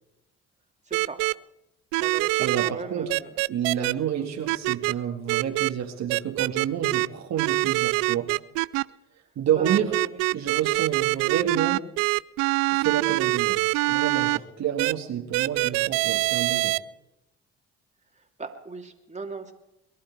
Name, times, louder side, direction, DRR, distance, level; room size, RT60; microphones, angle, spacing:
voice 1, 0.9-1.2 2.0-3.3 9.6-10.1 18.2-19.5, right 4 dB, 20° right, 3 dB, 2.8 m, -38 dB
sound 1, 0.9-1.3 1.9-2.7 3.1-3.9 4.5-4.9 5.3-5.7 6.1-7.1 7.4-8.8 9.6-14.4 14.8-14.9 15.3-16.8, right 24 dB, 85° right, 0.5 m, -24 dB
voice 2, 2.4-3.1 3.5-8.3 9.4-9.9 10.3-11.9 12.7-13.6 13.9-16.7, right 9 dB, 60° right, 3 dB, 2.2 m, -29 dB
22.5 x 11.5 x 4.7 m, 0.89 s
supercardioid pair, 65°, 31 cm